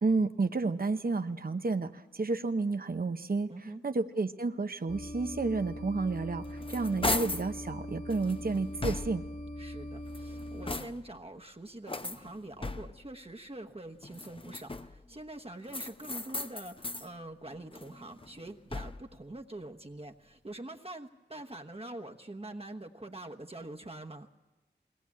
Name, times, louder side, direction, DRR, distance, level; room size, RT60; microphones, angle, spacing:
voice 1, 0.0-3.5 3.8-9.2, right 3 dB, 55° right, 8 dB, 0.9 m, -31 dB
voice 2, 3.5-3.8 9.6-24.3, right 2 dB, 35° right, 4 dB, 1.1 m, -45 dB
sound 1, 4.9-10.8, left 1 dB, 60° left, 1.9 m, -41 dB
sound 2, 6.2-7.5 8.1-9.4 10.0-11.2 11.9-13.1 14.0-15.1 15.7-17.1 17.5-19.2, left 2 dB, 30° left, 0.7 m, -37 dB
21.5 x 18.0 x 8.5 m, 1.1 s
wide cardioid pair, 50°, 18 cm